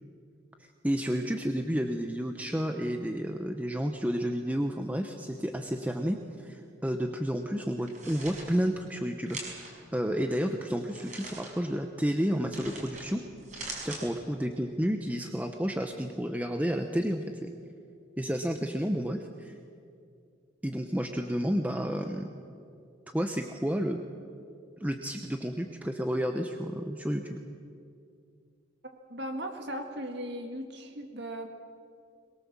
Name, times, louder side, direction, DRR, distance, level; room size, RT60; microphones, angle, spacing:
voice 1, 0.8-9.7 9.9-13.2 13.8-17.5 18.2-19.6 20.6-22.3 23.1-24.0 24.8-27.4, equal, 10° right, 5 dB, 0.8 m, -31 dB
sound 1, 7.8-8.4 9.3-9.7 10.9-11.5 12.5-13.0 13.4-14.0, right 3 dB, 40° right, 5.8 m, -41 dB
voice 2, 29.1-31.5, equal, 60° right, 4 dB, 1.9 m, -37 dB
22.0 x 22.0 x 7.4 m, 2.4 s
head